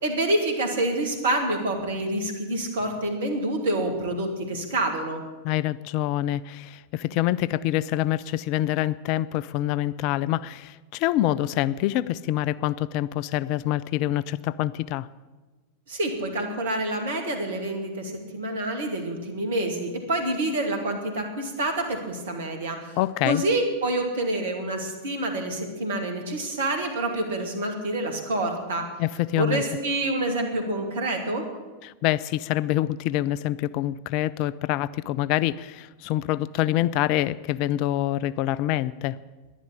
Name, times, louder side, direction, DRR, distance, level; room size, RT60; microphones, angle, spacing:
voice 1, 0.0-5.2 15.9-23.0 23.2-28.8 29.3-31.4, right 1 dB, 60° right, 4 dB, 2.3 m, -27 dB
voice 2, 5.4-15.1 23.0-23.4 29.0-29.6 31.8-39.2, left 14 dB, 45° left, 18 dB, 0.4 m, -26 dB
11.0 x 11.0 x 8.2 m, 1.2 s
figure-of-eight pair, 90°, 0 cm